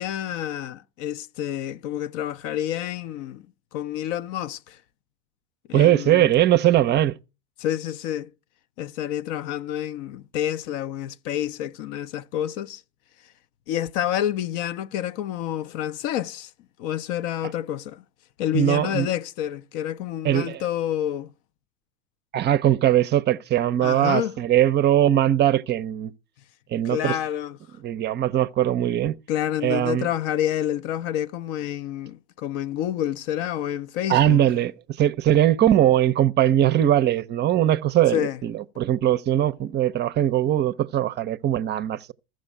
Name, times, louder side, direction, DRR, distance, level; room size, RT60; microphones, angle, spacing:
voice 1, 0.0-3.4 3.7-4.8 5.7-6.3 7.6-8.3 8.8-12.8 13.7-16.5 16.8-18.0 18.4-21.3 23.8-24.4 26.8-27.6 29.3-34.4 38.1-38.4, left 11 dB, 50° left, 0.6 m, -28 dB
voice 2, 5.7-7.2 18.5-19.1 20.2-20.6 22.3-26.1 26.7-27.2 27.8-29.2 29.6-30.1 34.1-34.7 35.0-42.0, right 12 dB, 30° right, 0.6 m, -20 dB
14.0 x 6.3 x 6.5 m
hypercardioid pair, 90°, 34 cm